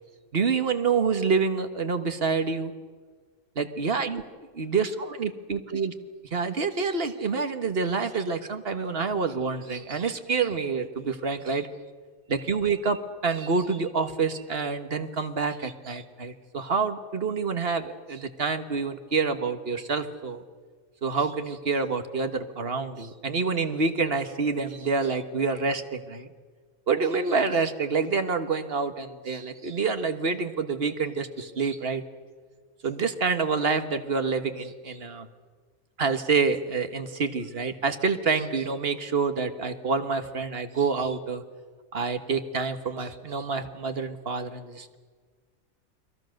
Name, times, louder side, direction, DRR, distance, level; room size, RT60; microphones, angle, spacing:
voice 1, 0.3-2.7 3.5-4.2 4.5-5.9 6.3-11.7 12.3-20.4 21.0-26.3 26.9-32.0 32.8-35.3 36.0-41.4 41.9-45.0, right 4 dB, 45° right, 8 dB, 1.6 m, -27 dB
30.0 x 21.5 x 6.6 m, 1.5 s
omnidirectional pair, 1.5 m